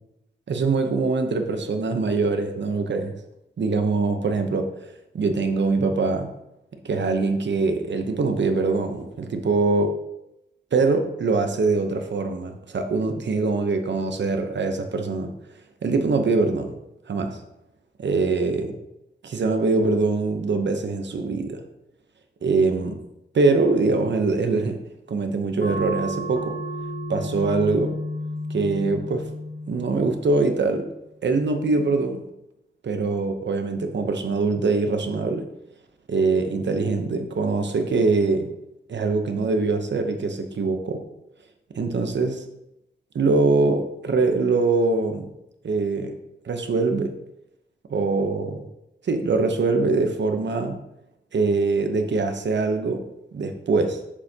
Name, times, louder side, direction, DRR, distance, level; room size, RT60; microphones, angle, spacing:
voice 1, 0.5-3.2 3.6-4.7 5.1-6.3 6.8-9.9 10.7-15.3 15.8-16.7 17.1-17.4 18.0-18.8 19.2-21.6 22.4-23.0 23.3-24.8 25.1-26.6 27.1-27.9 28.5-29.2 29.7-30.8 31.2-32.2 32.8-35.4 36.1-38.5 38.9-41.0 41.7-42.4 43.1-45.2 45.6-46.1 46.4-47.1 47.9-48.6 49.0-50.8 51.3-53.0 53.3-54.0, right 3 dB, 75° right, 6 dB, 0.9 m, -23 dB
sound 1, 25.6-30.7, equal, 55° left, 1.3 m, -32 dB
7.3 x 6.6 x 2.9 m, 0.86 s
wide cardioid pair, 145°, 19 cm